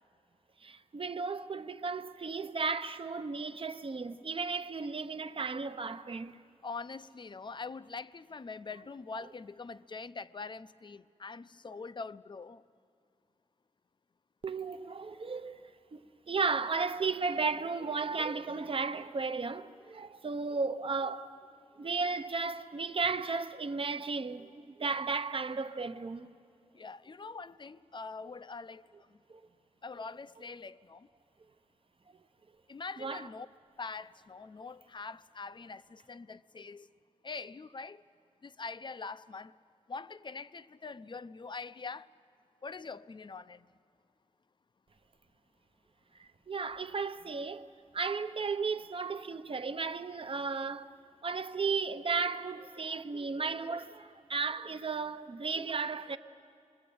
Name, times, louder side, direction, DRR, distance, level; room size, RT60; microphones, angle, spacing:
voice 1, 0.6-6.4 14.4-16.0 16.3-21.4 21.8-26.3 29.3-29.4 33.0-33.3 46.2-47.6 47.9-50.9 51.2-56.2, right 4 dB, 50° right, 0.8 m, -34 dB
voice 2, 6.6-12.6 26.7-29.2 29.8-31.1 32.7-33.5 33.8-36.9 37.2-38.0 38.4-39.6 39.9-42.1 42.6-43.7, left 4 dB, 40° left, 0.5 m, -43 dB
27.0 x 23.0 x 8.6 m
wide cardioid pair, 115°, 12 cm